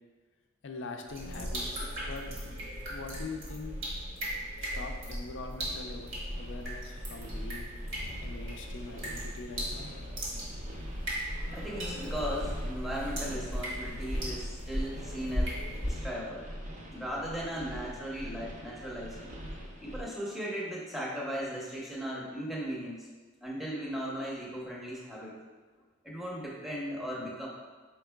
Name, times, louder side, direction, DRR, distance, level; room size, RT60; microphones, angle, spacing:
voice 1, 0.6-2.3 2.9-3.8 4.6-6.1 6.4-7.7 8.2-9.9, left 3 dB, 60° left, 4 dB, 0.4 m, -43 dB
sound 1, 1.1-15.9, equal, 65° right, 1.5 m, -37 dB
sound 2, 5.6-20.0, equal, 40° right, 0.7 m, -45 dB
voice 2, 11.5-16.4 16.9-19.2 19.8-23.1 23.4-25.4 26.0-27.5, equal, ahead, -5 dB, 0.7 m, -37 dB
4.6 x 4.4 x 2.2 m, 1.4 s
head